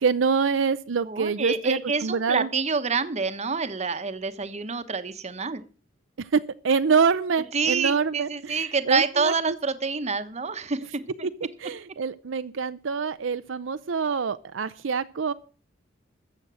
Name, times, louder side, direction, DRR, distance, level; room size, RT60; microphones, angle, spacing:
voice 1, 0.0-2.5 6.3-9.6 11.6-15.3, right 5 dB, 80° right, 12 dB, 0.6 m, -25 dB
voice 2, 1.1-5.6 7.5-11.3, right 4 dB, 35° right, 11 dB, 1.0 m, -27 dB
14.0 x 7.8 x 6.2 m, 0.39 s
head